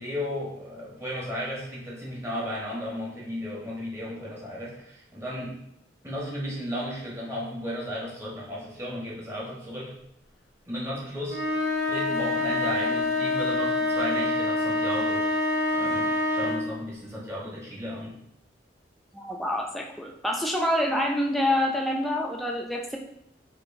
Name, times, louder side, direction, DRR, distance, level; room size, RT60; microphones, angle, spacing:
voice 1, 0.0-5.6 6.0-9.9 10.7-11.6 11.9-15.3 15.7-18.2, equal, 15° right, -6 dB, 1.0 m, -34 dB
sound 1, 11.3-16.7, left 2 dB, 55° left, 0.6 m, -26 dB
voice 2, 19.1-23.0, left 1 dB, ahead, 0 dB, 0.4 m, -27 dB
4.5 x 2.6 x 2.6 m, 0.78 s
head